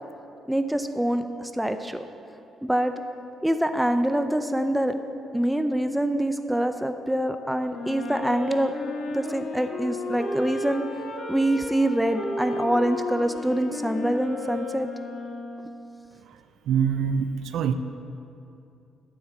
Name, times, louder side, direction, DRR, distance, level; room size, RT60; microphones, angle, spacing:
voice 1, 0.5-2.0 2.6-2.9 3.4-5.0 5.3-8.7 9.1-10.8 11.3-14.9, right 1 dB, 5° right, 8 dB, 0.7 m, -25 dB
Wind instrument woodwind instrument, 7.7-16.0, left 2 dB, 60° left, 1.6 m, -34 dB
voice 2, 16.7-17.7, right 7 dB, 80° right, 10 dB, 0.5 m, -24 dB
10.0 x 8.7 x 7.4 m, 2.7 s
cardioid pair, 90°, 0 cm